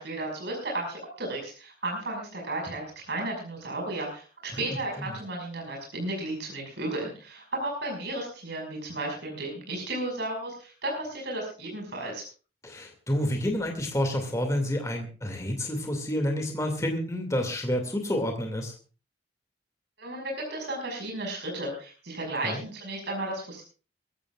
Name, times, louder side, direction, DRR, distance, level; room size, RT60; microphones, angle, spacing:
voice 1, 0.0-12.2 20.0-23.6, right 2 dB, 60° right, 0 dB, 5.6 m, -34 dB
voice 2, 4.5-5.1 12.6-18.7 22.4-22.6, left 1 dB, 15° left, 3 dB, 2.4 m, -29 dB
22.5 x 15.5 x 2.4 m, 0.36 s
head